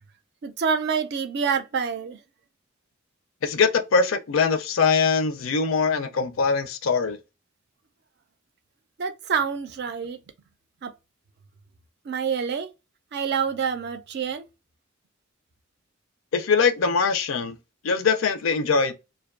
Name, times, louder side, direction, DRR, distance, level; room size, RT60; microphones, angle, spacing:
voice 1, 0.4-2.2 9.0-10.2 10.8-10.9 12.0-12.7 13.1-14.4, right 6 dB, 55° right, 0.4 m, -27 dB
voice 2, 3.4-7.2 16.3-17.6 17.8-18.9, left 5 dB, 75° left, 0.4 m, -22 dB
2.5 x 2.2 x 2.3 m
head